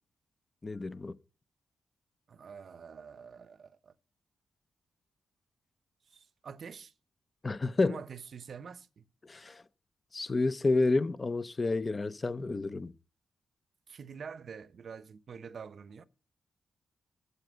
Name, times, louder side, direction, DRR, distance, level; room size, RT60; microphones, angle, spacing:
voice 1, 0.6-1.2 7.4-8.0 9.2-9.6 10.1-12.9, left 3 dB, 25° left, 0.5 m, -30 dB
voice 2, 2.3-3.9 6.1-6.9 7.8-9.0 13.9-16.0, right 6 dB, 50° right, 0.7 m, -46 dB
12.5 x 8.1 x 7.8 m
wide cardioid pair, 130°, 0 cm